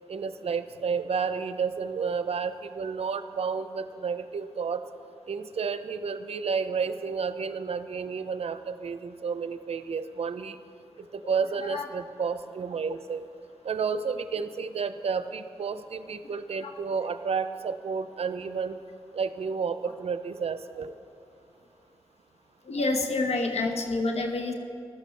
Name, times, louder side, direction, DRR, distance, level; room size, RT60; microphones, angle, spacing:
voice 1, 0.1-4.8 5.3-10.6 11.1-13.3 13.6-18.8 19.1-20.9, right 5 dB, 70° right, 11 dB, 0.5 m, -31 dB
voice 2, 22.7-24.5, left 2 dB, 80° left, 3 dB, 1.1 m, -28 dB
15.0 x 11.5 x 3.3 m, 2.5 s
cardioid pair, 45°, 11 cm